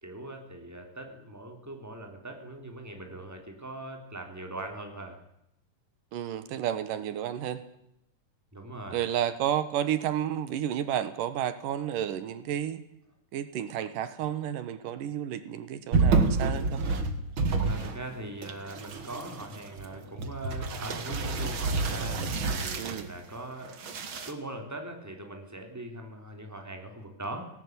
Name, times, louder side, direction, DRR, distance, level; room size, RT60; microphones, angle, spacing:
voice 1, 0.0-5.2 8.5-9.1 17.6-23.7 24.3-27.5, right 1 dB, 5° right, 4 dB, 3.5 m, -41 dB
voice 2, 6.1-7.6 8.9-12.8 13.3-16.8 22.8-23.1, right 10 dB, 85° right, 13 dB, 2.9 m, -31 dB
sound 1, 15.9-18.1 18.4-23.1 23.6-24.3, right 4 dB, 45° right, 2.2 m, -29 dB
18.5 x 18.0 x 9.6 m, 0.78 s
omnidirectional pair, 3.7 m